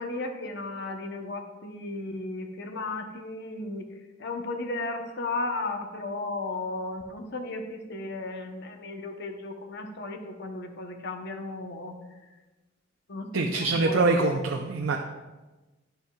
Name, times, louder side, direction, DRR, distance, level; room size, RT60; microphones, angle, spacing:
voice 1, 0.0-3.9 4.2-12.0 13.1-14.4, left 2 dB, 60° left, 4 dB, 0.9 m, -35 dB
voice 2, 13.3-15.0, right 3 dB, 80° right, 3 dB, 0.6 m, -24 dB
10.0 x 7.7 x 2.3 m, 1.1 s
head